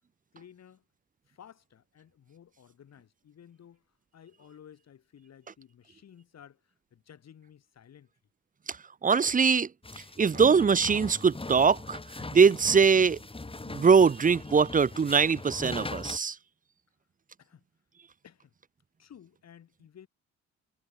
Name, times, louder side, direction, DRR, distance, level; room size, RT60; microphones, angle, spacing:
voice 1, 0.3-0.8 1.3-3.9 4.1-8.1 17.4-17.7 18.2-18.5 19.0-20.1, left 9 dB, 60° left, 6.1 m, -54 dB
voice 2, 9.0-9.7 10.2-12.0 12.3-13.2 13.7-16.3, right 5 dB, 25° right, 0.8 m, -22 dB
sound 1, 9.8-16.2, left 3 dB, 20° left, 4.1 m, -41 dB
cardioid pair, 90°, 30 cm